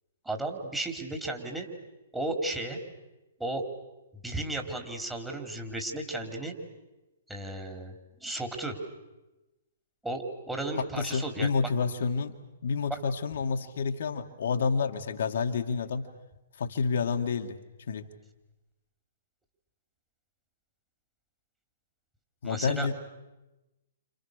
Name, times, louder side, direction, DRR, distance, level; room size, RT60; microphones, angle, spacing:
voice 1, 0.2-1.7 2.1-2.8 3.4-3.6 4.2-6.5 7.3-7.9 8.2-8.8 10.0-11.7 12.9-13.0 22.4-22.9, right 2 dB, 5° right, 3 dB, 4.0 m, -34 dB
voice 2, 11.0-12.3 12.6-16.1 16.6-17.6 17.9-18.1 22.4-22.9, left 5 dB, 65° left, 4 dB, 2.1 m, -29 dB
29.5 x 28.0 x 6.8 m, 1.0 s
hypercardioid pair, 125°, 0 cm